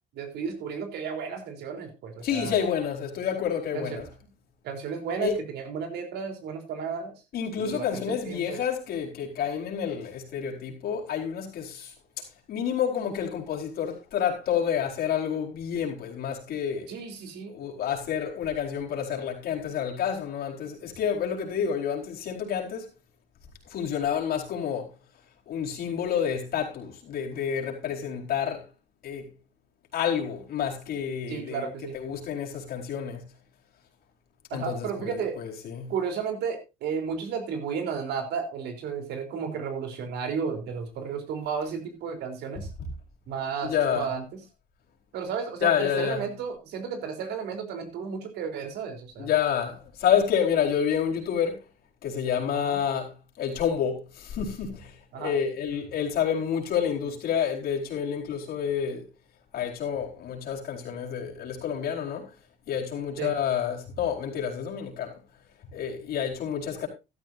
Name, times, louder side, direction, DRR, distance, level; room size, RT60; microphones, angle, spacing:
voice 1, 0.1-2.6 3.7-4.0 4.6-7.2 7.6-8.6 16.9-17.5 31.3-32.0 34.5-35.4 35.9-42.7 43.3-44.4 45.1-49.3 52.5-52.8 55.1-55.4 63.2-63.3, right 6 dB, 80° right, 3.7 m, -33 dB
voice 2, 2.2-4.0 5.2-5.4 7.3-16.9 17.5-22.9 23.7-24.9 25.5-28.7 29.0-29.3 29.9-31.7 31.9-33.2 34.5-35.9 42.8-42.9 43.6-44.1 45.6-46.2 49.2-51.6 52.0-59.0 59.5-62.3 62.7-65.1 65.7-66.9, left 8 dB, 65° left, 4.4 m, -29 dB
14.0 x 12.5 x 2.7 m
cardioid pair, 110°, 17 cm